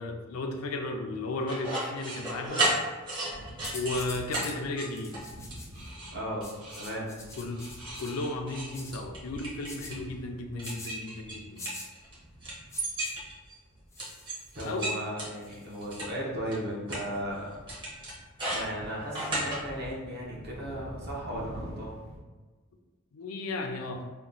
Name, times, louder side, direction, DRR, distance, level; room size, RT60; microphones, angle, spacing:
voice 1, 0.0-2.7 3.7-5.2 7.4-7.6 8.0-11.7 14.6-15.0 23.1-24.1, left 2 dB, 75° left, 4 dB, 0.4 m, -34 dB
sound 1, 1.5-4.0 4.3-4.5 4.8-5.2 5.5-6.1 6.4-6.9 7.3-10.0 10.6-12.1 12.4-13.5 14.0-16.1 16.5-16.6 16.9-17.0 17.7-19.6, right 1 dB, 25° right, 0.8 m, -33 dB
sound 2, 3.0-14.8 15.1-22.2, equal, 80° right, 0.7 m, -48 dB
sound 3, 3.6-4.6 4.9-5.9 6.4-8.1 8.7-9.0 9.6-9.9 10.6-10.9 11.6-11.9 12.7-13.1 13.9-14.8 15.4-16.0, left 2 dB, 15° left, 0.4 m, -45 dB
voice 2, 6.1-6.5 6.8-7.1 14.5-17.5 18.0-18.1 18.4-22.0, equal, 50° right, -5 dB, 0.9 m, -36 dB
2.8 x 2.2 x 3.8 m, 1.3 s
head